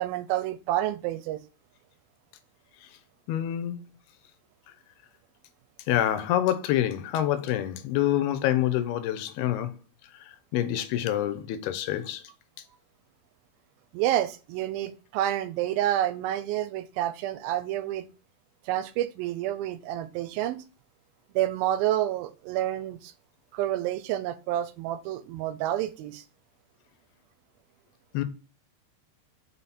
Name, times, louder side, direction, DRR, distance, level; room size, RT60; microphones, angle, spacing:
voice 1, 0.0-1.4 13.9-18.1 18.7-20.6 21.4-23.1 23.5-26.2, right 13 dB, 80° right, 2.3 m, -29 dB
voice 2, 3.3-3.8 5.9-9.7 10.5-12.2 28.1-28.2, left 12 dB, 85° left, 2.7 m, -26 dB
5.6 x 4.9 x 4.2 m
omnidirectional pair, 4.4 m